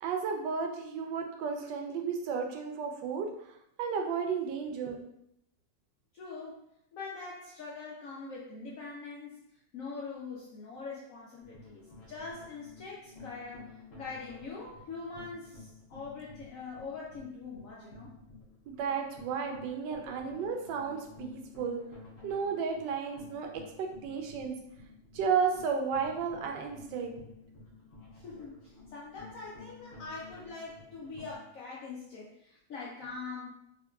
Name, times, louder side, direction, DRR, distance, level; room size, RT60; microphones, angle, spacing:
voice 1, 0.0-3.3 3.8-5.1 18.7-21.8 22.2-24.6 25.1-27.1, right 6 dB, 80° right, 3 dB, 1.2 m, -33 dB
voice 2, 6.1-6.6 6.9-9.4 9.7-18.1 19.8-20.0 28.1-33.5, left 4 dB, 75° left, -4 dB, 0.7 m, -43 dB
sound 1, 11.4-31.4, left 3 dB, 50° left, 1.5 m, -52 dB
3.7 x 2.8 x 2.3 m, 0.78 s
omnidirectional pair, 2.0 m